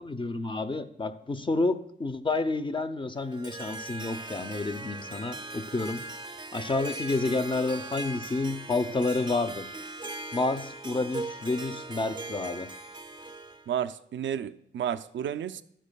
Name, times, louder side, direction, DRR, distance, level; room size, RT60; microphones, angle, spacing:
voice 1, 0.0-6.1 6.5-9.7 10.3-12.7, left 3 dB, 25° left, 0.6 m, -29 dB
Harp, 3.2-13.7, right 2 dB, 25° right, 0.6 m, -40 dB
voice 2, 13.7-15.6, right 9 dB, 85° right, 0.4 m, -32 dB
12.0 x 10.0 x 2.3 m
cardioid pair, 70°, 19 cm